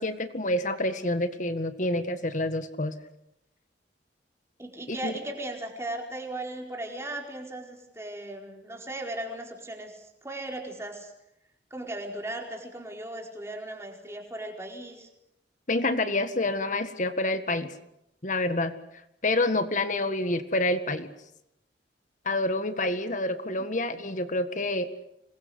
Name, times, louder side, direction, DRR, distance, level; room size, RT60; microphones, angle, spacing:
voice 1, 0.0-2.9 4.9-5.1 15.7-17.7 18.2-18.7 19.2-21.1 22.3-24.9, left 2 dB, 45° left, 10 dB, 1.8 m, -28 dB
voice 2, 4.6-11.1 11.7-15.1 23.6-23.7, right 1 dB, 15° right, 1 dB, 4.6 m, -37 dB
27.0 x 21.5 x 8.1 m, 0.83 s
head